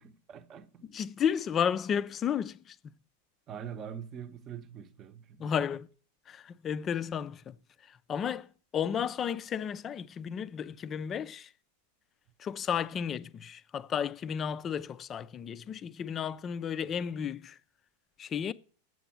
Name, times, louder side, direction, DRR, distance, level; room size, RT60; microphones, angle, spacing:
voice 1, 0.0-0.9 3.5-5.7, right 8 dB, 30° right, 0.8 m, -44 dB
voice 2, 0.9-2.8 5.4-5.9 6.3-7.6 7.8-11.5 12.4-17.6 18.2-18.5, left 8 dB, 25° left, 0.5 m, -33 dB
7.7 x 7.7 x 7.2 m
figure-of-eight pair, 90°, 0 cm